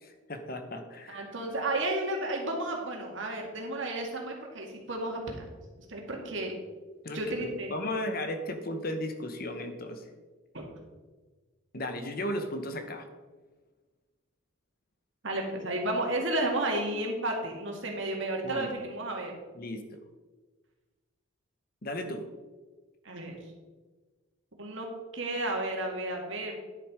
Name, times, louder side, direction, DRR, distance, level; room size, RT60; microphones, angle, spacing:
voice 1, 0.0-1.2 7.0-10.0 11.7-13.1 18.4-18.8 19.6-19.8 21.8-22.2, left 1 dB, 45° left, 7 dB, 1.0 m, -35 dB
voice 2, 1.1-5.4 5.9-6.5 7.1-7.7 10.5-10.7 15.2-19.3 23.0-23.4 24.6-24.9 25.1-26.6, right 1 dB, 65° right, 1 dB, 2.1 m, -32 dB
10.5 x 6.9 x 4.9 m, 1.3 s
head